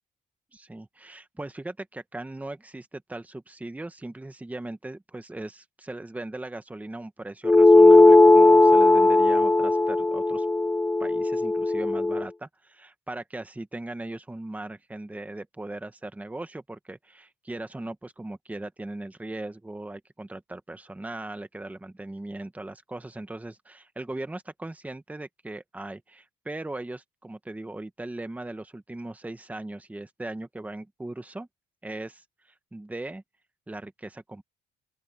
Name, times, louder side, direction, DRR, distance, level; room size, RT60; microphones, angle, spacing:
voice 1, 0.5-10.4 11.0-31.5 31.8-32.2 32.7-33.2 33.7-34.4, right 2 dB, 10° right, 1.5 m, -38 dB
sound 1, 7.4-12.3, left 2 dB, 10° left, 0.5 m, -17 dB
open air
cardioid pair, 110°, 17 cm